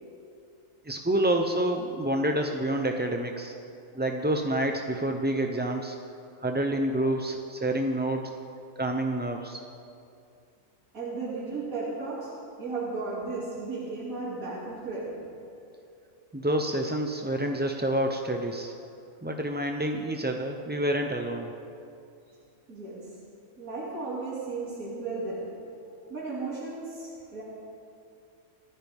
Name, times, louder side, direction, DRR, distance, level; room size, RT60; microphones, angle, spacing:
voice 1, 0.9-3.5 3.9-6.0 6.4-8.3 8.8-9.6 16.3-18.7 19.2-21.5, right 1 dB, 15° right, 3 dB, 0.4 m, -28 dB
voice 2, 10.9-12.3 12.6-15.1 22.7-23.1 23.6-25.4 26.1-27.4, right 3 dB, 80° right, -8 dB, 3.2 m, -34 dB
25.5 x 14.0 x 3.6 m, 2.5 s
omnidirectional pair, 1.4 m